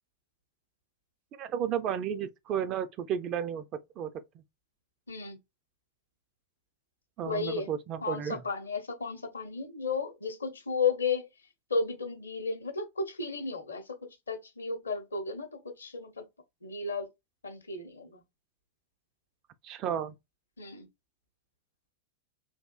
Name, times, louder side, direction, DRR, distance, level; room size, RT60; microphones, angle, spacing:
voice 1, 1.4-4.1 7.2-8.4 19.6-20.1, right 9 dB, 35° right, 0.3 m, -33 dB
voice 2, 7.2-7.7 8.0-11.3 11.7-16.3 16.6-17.1 17.4-18.2 20.6-20.9, left 4 dB, 75° left, 0.6 m, -33 dB
3.4 x 2.4 x 2.2 m
figure-of-eight pair, 90°, 0 cm